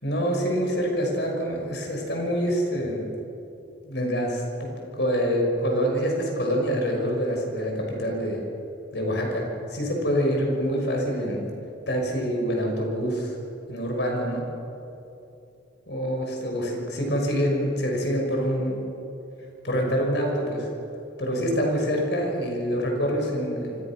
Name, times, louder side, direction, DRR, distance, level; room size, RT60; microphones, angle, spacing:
voice 1, 0.0-3.1 3.8-4.7 5.0-8.4 8.9-11.5 11.9-13.3 13.7-14.5 15.9-18.9 19.6-20.7 21.2-23.8, equal, 65° left, 1 dB, 6.2 m, -26 dB
27.5 x 25.5 x 6.3 m, 2.9 s
head